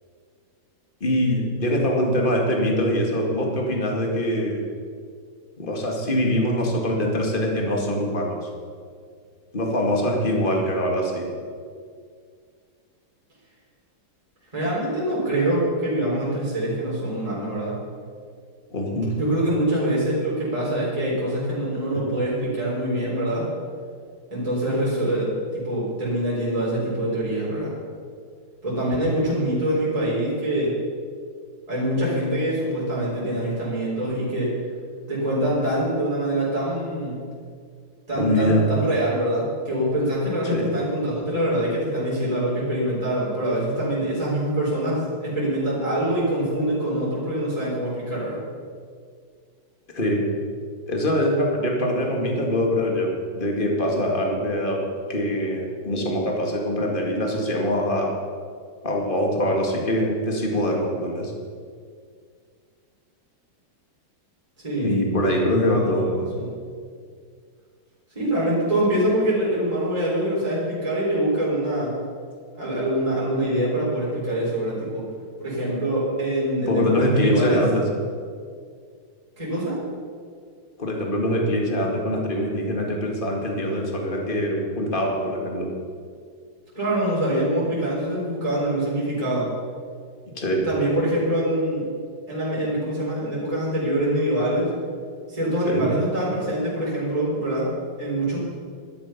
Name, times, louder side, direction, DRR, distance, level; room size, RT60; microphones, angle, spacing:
voice 1, 1.0-4.6 5.6-8.4 9.5-11.3 18.7-19.1 21.9-22.1 38.1-38.7 40.4-40.7 49.9-50.2 50.9-54.8 55.1-58.1 58.8-61.3 64.8-66.1 76.7-77.8 80.8-85.7 90.3-90.7 95.7-95.8, left 1 dB, 25° left, 0 dB, 2.2 m, -23 dB
voice 2, 14.5-17.8 19.2-23.5 24.3-27.7 28.6-30.7 31.7-34.6 35.1-37.3 38.1-48.4 64.6-65.0 65.4-66.5 68.1-72.0 72.6-75.1 75.4-77.6 79.4-79.8 86.7-89.5 90.6-91.9 92.3-94.7 95.3-97.7 98.0-98.4, right 1 dB, 15° right, -8 dB, 4.3 m, -24 dB
12.5 x 11.5 x 5.9 m, 2.1 s
omnidirectional pair, 2.2 m